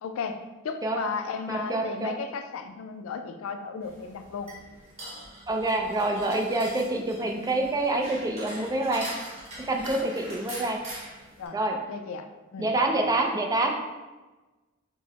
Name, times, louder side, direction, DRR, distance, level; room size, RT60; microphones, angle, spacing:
voice 1, 0.0-4.5 11.4-11.6 11.9-12.3 12.5-12.7 13.0-13.1, left 5 dB, 85° left, 7 dB, 0.3 m, -35 dB
voice 2, 1.5-2.1 5.5-9.0 9.7-10.8 11.5-11.8 12.6-13.7, right 2 dB, 20° right, 2 dB, 0.3 m, -26 dB
sound 1, 3.8-11.5, right 1 dB, 35° right, 0.9 m, -42 dB
4.6 x 2.0 x 2.9 m, 1.2 s
head